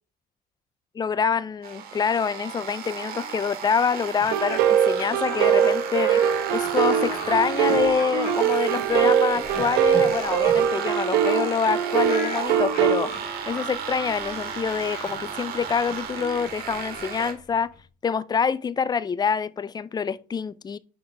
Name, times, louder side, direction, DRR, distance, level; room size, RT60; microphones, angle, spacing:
voice 1, 1.0-6.2 6.5-13.1 13.5-17.7 18.0-20.8, left 6 dB, 25° left, 0.3 m, -26 dB
sound 1, 1.6-17.3, right 7 dB, 65° right, 1.8 m, -34 dB
Laughter, 4.2-11.3 11.6-11.7 12.0-17.8, left 3 dB, 65° left, 2.1 m, -40 dB
sound 2, 4.3-13.0, right 9 dB, 85° right, 0.9 m, -22 dB
9.2 x 4.0 x 3.3 m
cardioid pair, 110°, 17 cm